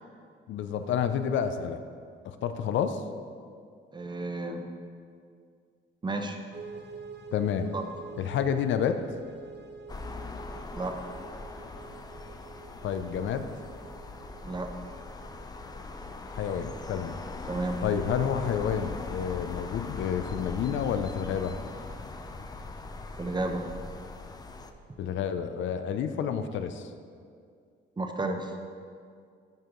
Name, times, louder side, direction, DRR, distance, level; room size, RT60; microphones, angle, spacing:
voice 1, 0.5-1.8 2.2-3.0 7.3-7.7 8.2-9.0 12.8-13.5 16.3-17.2 17.8-21.6 25.0-26.9, left 8 dB, 75° left, 9 dB, 0.5 m, -29 dB
voice 2, 3.9-4.7 6.0-6.4 7.7-7.8 10.7-11.0 14.4-14.7 17.5-17.8 23.2-23.7 28.0-28.5, right 2 dB, 20° right, 5 dB, 0.7 m, -32 dB
sound 1, 6.5-25.2, right 5 dB, 60° right, 0.9 m, -50 dB
sound 2, 9.9-24.7, left 4 dB, 20° left, 0.5 m, -40 dB
10.5 x 4.5 x 3.8 m, 2.2 s
cardioid pair, 90°, 20 cm